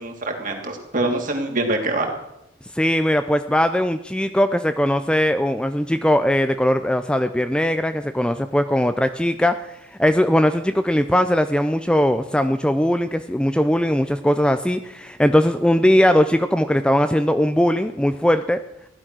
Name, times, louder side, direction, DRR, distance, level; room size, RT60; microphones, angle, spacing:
voice 1, 0.0-2.1, right 2 dB, 45° right, 3 dB, 2.8 m, -24 dB
voice 2, 2.7-18.6, equal, 5° left, 9 dB, 0.5 m, -20 dB
16.0 x 11.5 x 6.2 m, 0.84 s
head